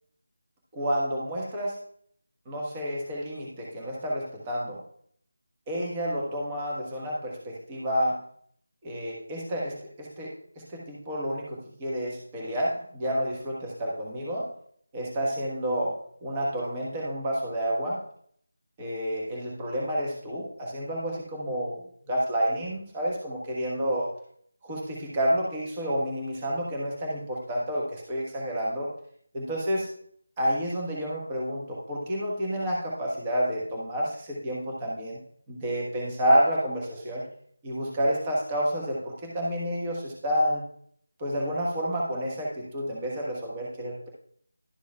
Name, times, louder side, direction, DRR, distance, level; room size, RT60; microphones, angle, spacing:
voice 1, 0.7-1.8 2.5-4.8 5.7-8.2 8.8-14.5 14.9-18.0 18.8-21.8 22.1-24.1 24.6-28.9 29.3-29.9 30.4-35.2 35.5-37.2 37.6-40.7 41.2-44.1, equal, 20° right, -4 dB, 1.3 m, -29 dB
11.5 x 7.0 x 2.3 m, 0.63 s
figure-of-eight pair, 160°, 0 cm